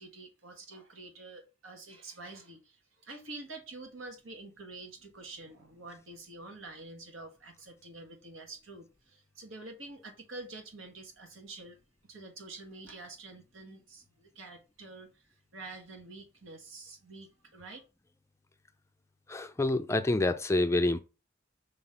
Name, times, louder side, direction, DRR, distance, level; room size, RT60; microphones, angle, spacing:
voice 1, 0.0-11.8 12.1-17.8, right 2 dB, 85° right, 1.7 m, -47 dB
voice 2, 19.3-21.0, left 2 dB, 15° left, 0.4 m, -27 dB
5.7 x 3.3 x 5.6 m
head